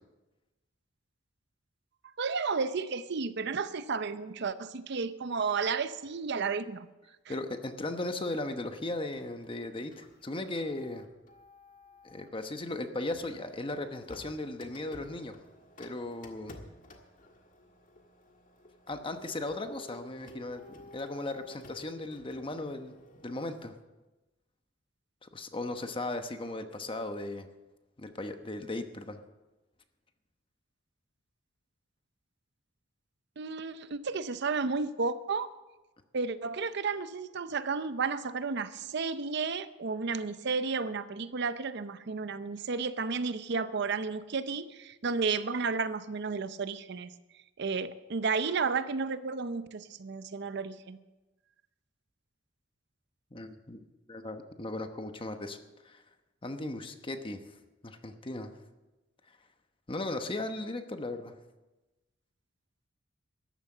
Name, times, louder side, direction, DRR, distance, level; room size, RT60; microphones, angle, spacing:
voice 1, 2.2-6.9 7.3-7.4 33.4-35.5 36.1-47.1 47.6-51.0, right 4 dB, 60° right, 13 dB, 0.6 m, -32 dB
voice 2, 7.3-11.1 12.0-15.4 15.8-16.6 18.9-20.6 20.9-22.9 23.2-23.7 25.2-27.5 28.0-29.2 53.3-53.8 54.1-55.6 55.8-56.0 56.4-57.4 57.8-58.5 59.9-61.4, left 2 dB, 25° left, 8 dB, 1.0 m, -37 dB
Printer, 9.1-12.4 13.1-23.6, left 1 dB, 40° left, 1.6 m, -53 dB
13.5 x 11.0 x 6.7 m, 1.1 s
head